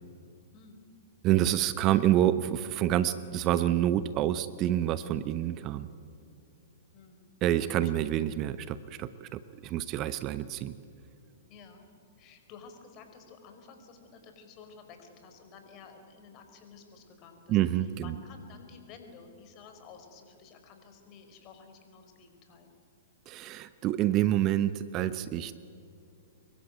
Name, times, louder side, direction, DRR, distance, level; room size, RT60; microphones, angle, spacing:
voice 1, 0.5-0.9 6.9-7.3 7.8-7.9 11.5-11.9 12.2-22.7, left 5 dB, 35° left, 6 dB, 4.9 m, -52 dB
voice 2, 1.2-5.9 7.4-10.7 17.5-18.1 23.3-25.7, right 12 dB, 30° right, 14 dB, 0.9 m, -27 dB
26.0 x 22.5 x 9.4 m, 2.5 s
figure-of-eight pair, 110°, 0 cm